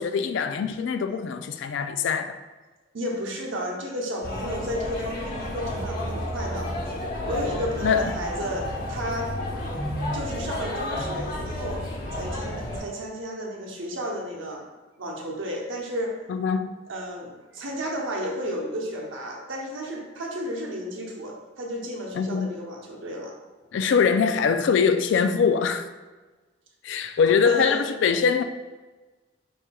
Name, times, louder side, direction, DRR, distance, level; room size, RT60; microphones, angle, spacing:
voice 1, 0.0-2.4 7.8-8.1 16.3-16.8 22.1-22.5 23.7-25.9 26.8-28.4, left 6 dB, 70° left, 0.3 m, -23 dB
voice 2, 2.9-6.7 7.3-9.3 10.1-11.8 12.1-14.7 15.0-16.2 16.9-23.3 27.4-27.9, equal, 90° right, 0.9 m, -32 dB
sound 1, 4.2-12.8, left 1 dB, 50° left, 1.1 m, -31 dB
4.9 x 4.2 x 2.3 m
head